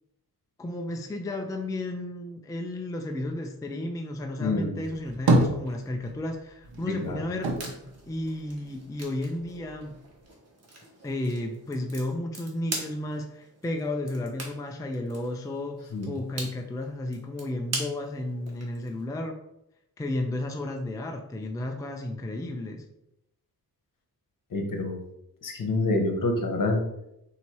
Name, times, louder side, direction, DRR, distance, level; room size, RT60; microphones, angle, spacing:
voice 1, 0.6-7.5 8.1-9.9 11.0-19.4 20.0-22.8, left 1 dB, 10° left, 3 dB, 0.4 m, -33 dB
voice 2, 4.4-4.8 7.0-7.2 15.9-16.1 24.5-25.0 25.4-26.8, left 2 dB, 60° left, 3 dB, 1.0 m, -27 dB
sound 1, 4.8-6.3 6.6-9.0 9.4-10.3, right 1 dB, 75° right, 1.0 m, -27 dB
sound 2, 7.4-19.1, right 2 dB, 40° right, 1.4 m, -42 dB
4.2 x 2.8 x 4.5 m, 0.83 s
wide cardioid pair, 115°, 37 cm